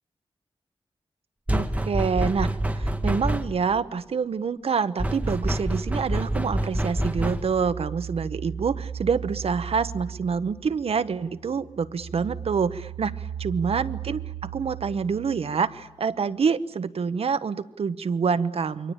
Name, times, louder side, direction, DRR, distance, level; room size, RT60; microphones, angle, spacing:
sound 1, 1.5-3.7 5.0-7.7, right 1 dB, 15° right, 1.4 m, -26 dB
voice 1, 1.5-2.5 2.7-18.9, right 6 dB, 70° right, 13 dB, 0.9 m, -27 dB
sound 2, 7.3-11.1 11.5-16.1, right 9 dB, 50° right, 1.2 m, -37 dB
28.5 x 23.0 x 8.8 m, 0.96 s
wide cardioid pair, 155°, 10 cm